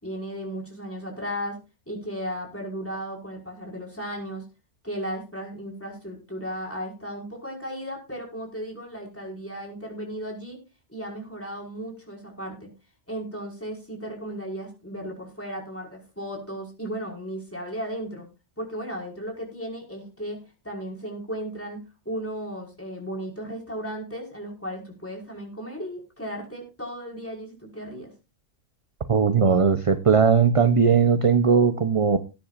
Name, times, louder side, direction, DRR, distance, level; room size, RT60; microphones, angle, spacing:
voice 1, 0.0-1.6 1.9-4.4 4.8-10.6 10.9-12.7 13.1-18.3 18.6-28.1, equal, 10° left, -1 dB, 5.3 m, -35 dB
voice 2, 29.1-32.2, right 6 dB, 30° right, 9 dB, 0.7 m, -19 dB
20.0 x 9.9 x 2.5 m, 0.29 s
omnidirectional pair, 1.3 m